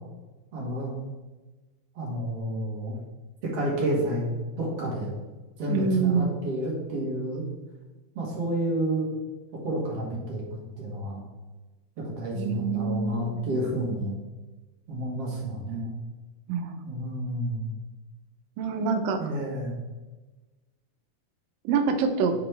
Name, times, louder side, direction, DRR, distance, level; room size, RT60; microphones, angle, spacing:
voice 1, 0.5-1.1 2.0-3.0 3.5-5.1 5.6-7.4 8.2-9.1 9.6-11.2 12.2-14.2 14.9-15.9 16.8-17.7 19.2-19.8, right 1 dB, 55° right, -3 dB, 2.1 m, -30 dB
voice 2, 5.7-6.4 12.3-13.4 16.5-16.8 18.6-19.2 21.6-22.3, right 5 dB, 85° right, 6 dB, 2.4 m, -26 dB
7.6 x 4.1 x 3.3 m, 1.2 s
omnidirectional pair, 3.9 m